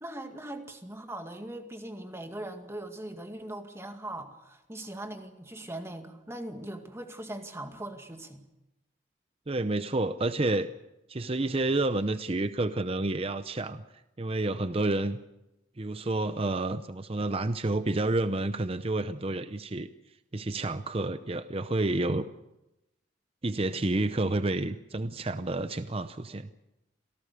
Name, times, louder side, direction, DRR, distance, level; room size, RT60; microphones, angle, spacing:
voice 1, 0.0-8.4, right 1 dB, 15° right, 5 dB, 2.1 m, -40 dB
voice 2, 9.5-10.7 11.1-13.8 14.2-15.2 15.8-19.9 20.3-22.3 23.4-26.5, right 2 dB, 30° right, 11 dB, 0.7 m, -29 dB
27.5 x 17.5 x 6.8 m, 0.93 s
head